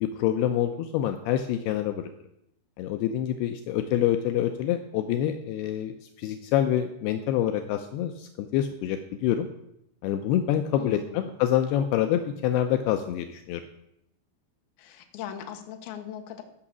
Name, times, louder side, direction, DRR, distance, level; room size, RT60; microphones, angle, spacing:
voice 1, 0.0-2.1 2.8-9.5 10.0-13.6, left 11 dB, 85° left, 6 dB, 2.3 m, -26 dB
voice 2, 10.8-11.3 14.8-16.4, left 9 dB, 70° left, 4 dB, 2.8 m, -39 dB
15.0 x 5.8 x 7.4 m, 0.80 s
omnidirectional pair, 5.3 m